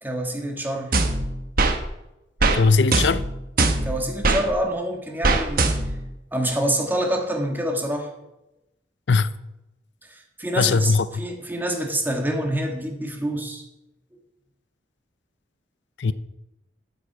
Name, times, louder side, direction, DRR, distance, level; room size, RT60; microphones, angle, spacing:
voice 1, 0.0-1.0 3.8-5.7 6.3-8.1 10.1-13.6, right 1 dB, 10° right, 1.8 m, -26 dB
sound 1, 0.9-1.8 2.4-2.6 2.9-4.4 5.2-6.1, right 3 dB, 55° right, 1.1 m, -21 dB
voice 2, 2.5-3.2 9.1-9.3 10.6-11.1 16.0-16.1, left 4 dB, 70° left, 0.5 m, -19 dB
12.5 x 7.9 x 4.8 m
head